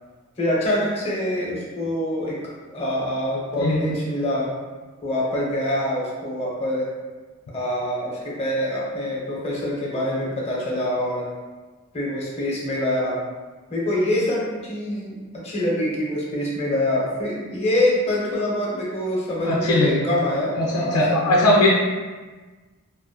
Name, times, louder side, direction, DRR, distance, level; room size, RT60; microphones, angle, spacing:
voice 1, 0.4-2.4 2.7-4.5 5.0-6.9 7.5-11.2 11.9-13.2 13.7-15.2 15.4-21.2, left 1 dB, 25° left, -5 dB, 0.6 m, -25 dB
voice 2, 19.4-20.0 20.5-21.7, left 1 dB, 75° left, -3 dB, 0.4 m, -19 dB
2.7 x 2.3 x 2.2 m, 1.3 s
head